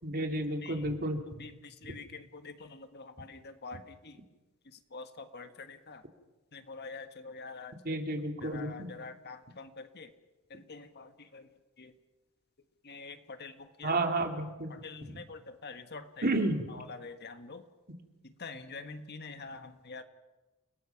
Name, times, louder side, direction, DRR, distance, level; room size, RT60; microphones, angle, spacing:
voice 1, 0.0-1.2 1.8-2.0 7.8-8.9 13.8-14.7 15.0-15.1 16.2-16.7, right 2 dB, 45° right, 4 dB, 2.8 m, -31 dB
voice 2, 1.8-4.2 4.9-6.0 6.5-7.7 8.4-10.1 10.5-11.4 11.8-11.9 12.8-13.5 13.8-13.9 14.8-16.3 16.9-17.6 18.4-20.0, left 4 dB, 50° left, 9 dB, 1.5 m, -45 dB
30.0 x 19.5 x 6.0 m, 1.1 s
head